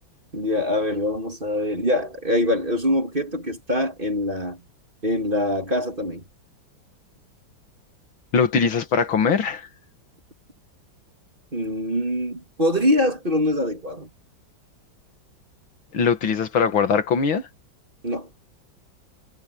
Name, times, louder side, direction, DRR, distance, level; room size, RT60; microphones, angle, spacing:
voice 1, 0.3-4.6 5.0-6.2 11.5-14.1 18.0-18.3, left 1 dB, 25° right, 2.9 m, -24 dB
voice 2, 8.3-9.7 15.9-17.5, left 6 dB, 80° left, 2.5 m, -21 dB
omnidirectional pair, 2.2 m